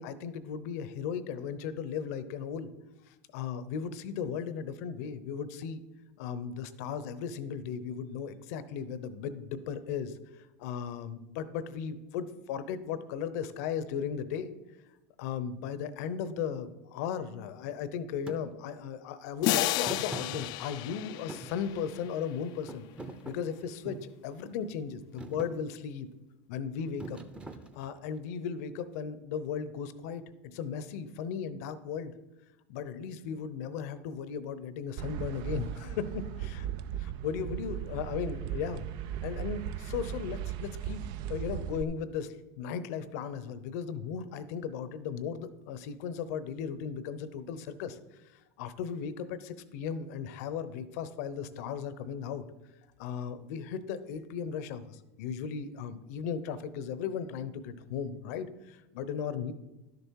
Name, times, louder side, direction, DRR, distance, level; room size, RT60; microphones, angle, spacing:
voice 1, 0.0-2.7 3.1-5.8 6.2-14.5 15.2-22.8 23.2-26.1 26.5-27.2 27.7-30.2 30.5-32.1 32.7-36.7 37.0-38.9 39.2-41.0 41.3-48.0 48.2-52.4 53.0-59.5, left 7 dB, 70° left, 14 dB, 0.8 m, -36 dB
Thump thud, 18.3-18.4 19.8-20.9 21.3-22.3 22.7-24.1 24.7-24.9 25.2-25.6 27.0-28.1, right 2 dB, 10° right, 0.8 m, -43 dB
sound 1, 19.4-22.2, left 15 dB, 55° left, 0.4 m, -32 dB
sound 2, 35.0-41.8, right 10 dB, 55° right, 0.5 m, -37 dB
11.5 x 6.8 x 4.7 m, 1.0 s
supercardioid pair, 110°, 9 cm